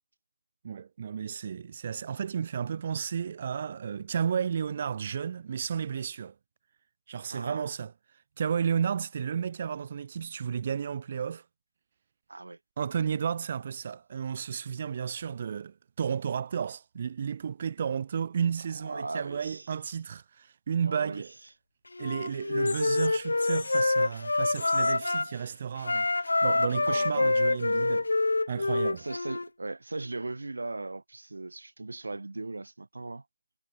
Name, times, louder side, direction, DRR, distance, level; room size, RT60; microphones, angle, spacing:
voice 1, 0.6-6.3 7.1-7.9 8.4-11.4 12.8-21.3 22.0-28.1 28.5-29.1, right 7 dB, 30° right, 0.6 m, -32 dB
voice 2, 7.3-7.7 12.3-12.6 18.8-19.7 20.9-21.2 26.9-27.3 29.0-33.2, right 2 dB, 85° right, 1.3 m, -38 dB
Wind instrument woodwind instrument, 22.0-25.3 25.8-29.5, left 2 dB, 85° left, 0.5 m, -26 dB
sound 1, 22.3-22.4 22.7-23.2 23.4-23.9 24.5-25.0, left 5 dB, 45° left, 1.5 m, -41 dB
figure-of-eight pair, 170°, 0 cm